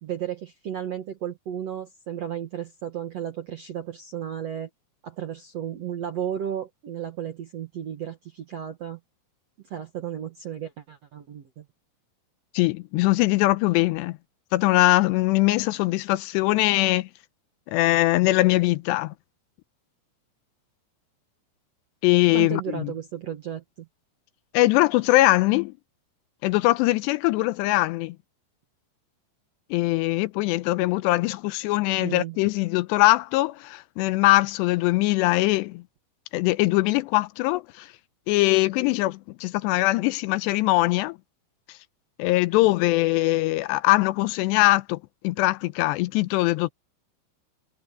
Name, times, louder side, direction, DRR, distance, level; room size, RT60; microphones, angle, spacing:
voice 1, 0.0-4.7 5.0-9.0 9.7-11.6 22.3-23.9 32.0-32.4, right 9 dB, 65° right, 1.6 m, -34 dB
voice 2, 12.5-14.2 14.5-17.1 17.7-19.1 22.0-22.9 24.5-25.7 26.4-28.2 29.7-35.8 36.3-37.9 38.3-41.2 41.7-41.8 42.2-45.0 45.2-46.7, left 19 dB, 85° left, 2.7 m, -22 dB
omnidirectional pair, 5.1 m